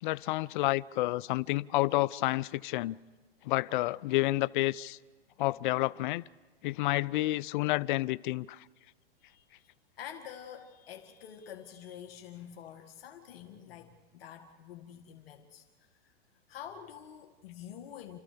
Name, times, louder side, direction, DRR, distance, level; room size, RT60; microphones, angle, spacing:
voice 1, 0.0-3.0 3.4-5.0 5.4-6.2 6.6-8.6, left 18 dB, 50° left, 0.6 m, -29 dB
voice 2, 9.2-9.7 10.0-15.7 16.0-16.1 16.5-18.2, left 9 dB, 70° left, 2.0 m, -47 dB
29.5 x 14.0 x 6.8 m
hypercardioid pair, 130°, 31 cm